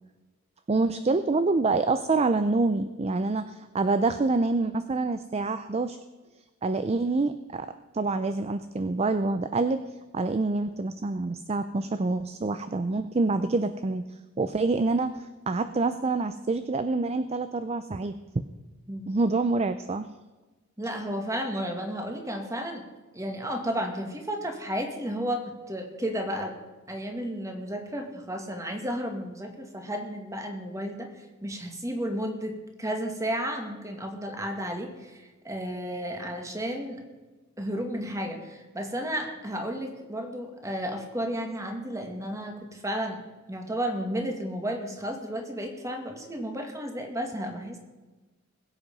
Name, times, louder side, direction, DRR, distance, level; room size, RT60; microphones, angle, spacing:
voice 1, 0.7-6.0 6.6-9.8 10.1-14.0 14.4-18.2 19.1-20.1, right 3 dB, 30° right, 11 dB, 0.5 m, -26 dB
voice 2, 20.8-22.8 23.1-26.5 26.9-31.1 31.4-37.0 37.6-43.2 43.5-47.8, equal, 15° right, 4 dB, 2.0 m, -33 dB
21.0 x 8.2 x 5.3 m, 1.2 s
head